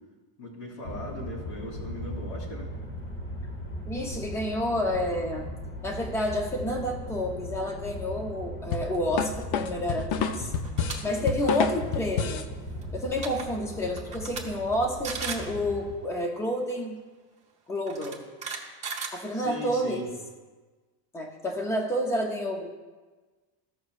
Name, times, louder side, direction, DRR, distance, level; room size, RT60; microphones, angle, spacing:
voice 1, 0.4-2.7 11.0-11.6 19.3-20.1, left 2 dB, 75° left, -5 dB, 3.0 m, -39 dB
sound 1, 0.8-16.0, equal, 25° left, 1.1 m, -38 dB
voice 2, 3.9-5.5 5.8-10.5 11.0-12.5 12.9-17.0 17.7-18.2 19.1-20.0 21.1-22.7, equal, 5° left, 2 dB, 0.3 m, -29 dB
sound 2, 8.7-12.5, left 7 dB, 55° left, 0.6 m, -29 dB
sound 3, 10.6-11.0 11.4-11.6 12.8-12.9 13.1-13.4 14.0-14.4 14.7-14.8 15.0-15.5 16.7-16.8 17.9-19.7, right 5 dB, 15° right, 1.1 m, -35 dB
15.0 x 6.3 x 2.4 m, 1.3 s
cardioid pair, 170°, 48 cm